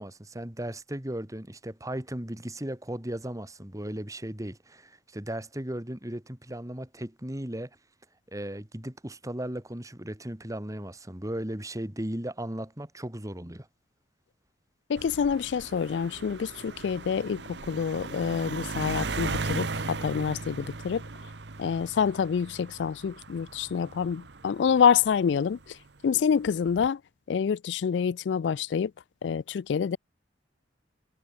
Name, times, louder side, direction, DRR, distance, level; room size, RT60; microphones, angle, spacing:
voice 1, 0.0-7.7 8.3-13.7, right 1 dB, 20° right, 2.1 m, -36 dB
voice 2, 14.9-21.0 21.6-25.8 26.0-27.0 27.3-28.9 29.2-30.0, left 7 dB, 75° left, 0.4 m, -27 dB
sound 1, 15.0-25.7 26.5-26.9, right 3 dB, 70° right, 1.2 m, -37 dB
head